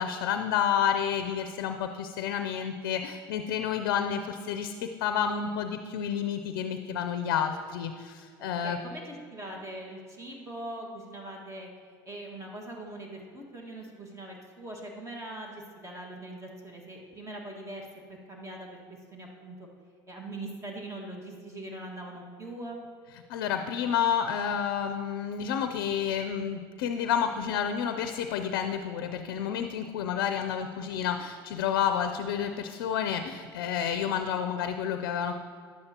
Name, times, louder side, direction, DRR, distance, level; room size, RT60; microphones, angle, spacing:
voice 1, 0.0-8.8 23.3-35.4, left 8 dB, 80° left, 8 dB, 0.5 m, -30 dB
voice 2, 8.4-11.7 12.0-18.8 19.1-19.7 20.1-22.8, right 1 dB, 25° right, 0 dB, 1.6 m, -42 dB
10.5 x 7.9 x 2.9 m, 2.1 s
hypercardioid pair, 85°, 12 cm